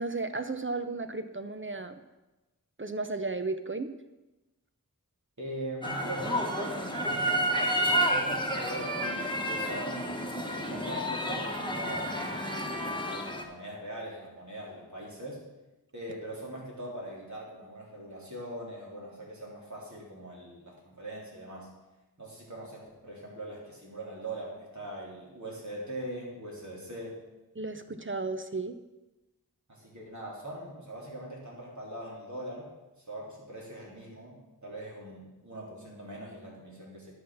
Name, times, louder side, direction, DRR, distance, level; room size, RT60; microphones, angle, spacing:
voice 1, 0.0-2.0 2.8-3.9 27.5-28.8, right 3 dB, 35° right, 8 dB, 0.7 m, -34 dB
voice 2, 5.4-10.2 10.6-12.6 13.0-15.4 15.9-21.7 22.2-27.2 29.7-32.7 33.0-37.2, right 1 dB, 55° right, -4 dB, 3.4 m, -41 dB
sound 1, 5.8-13.4, equal, 15° left, 1.4 m, -30 dB
11.0 x 6.0 x 6.3 m, 1.1 s
wide cardioid pair, 50°, 35 cm